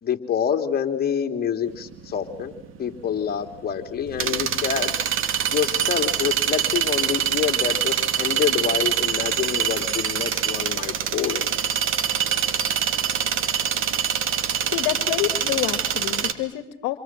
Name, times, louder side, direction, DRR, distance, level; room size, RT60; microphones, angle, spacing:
voice 1, 0.0-2.5 2.8-4.9 5.5-11.5, left 8 dB, 30° left, 5 dB, 3.4 m, -27 dB
sound 1, 1.7-16.3, right 9 dB, 45° right, 2.6 m, -25 dB
voice 2, 14.7-17.0, left 15 dB, 60° left, 9 dB, 2.1 m, -28 dB
27.5 x 27.0 x 7.7 m, 0.83 s
supercardioid pair, 110°, 30 cm